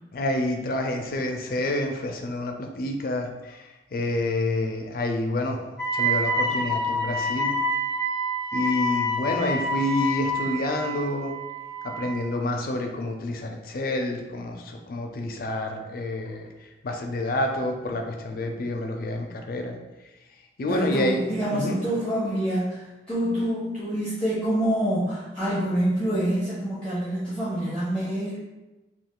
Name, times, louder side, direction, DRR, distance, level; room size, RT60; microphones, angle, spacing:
voice 1, 0.1-5.6 5.9-7.6 8.5-11.4 11.8-16.5 16.8-19.8 20.6-21.2 21.5-21.8, left 1 dB, 50° left, 3 dB, 0.4 m, -28 dB
Wind instrument woodwind instrument, 5.8-12.2, equal, 65° right, 1.2 m, -27 dB
voice 2, 20.7-28.4, right 1 dB, 5° left, -10 dB, 0.6 m, -26 dB
2.3 x 2.3 x 3.6 m, 1.1 s
head